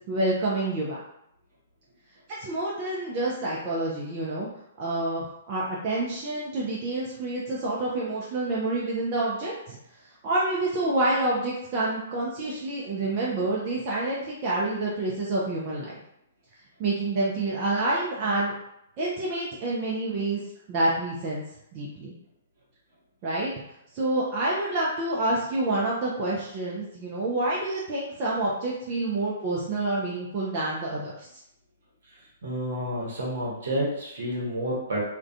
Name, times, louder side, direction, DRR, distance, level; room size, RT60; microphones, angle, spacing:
voice 1, 0.1-1.0 2.3-4.5 4.8-9.8 10.2-15.9 16.8-18.5 19.0-20.4 20.7-21.4 21.7-22.1 23.2-23.5 23.9-31.3, right 2 dB, 35° right, -5 dB, 0.4 m, -28 dB
voice 2, 32.4-35.0, equal, 65° right, -3 dB, 0.9 m, -29 dB
2.3 x 2.1 x 2.5 m, 0.79 s
figure-of-eight pair, 115°, 0 cm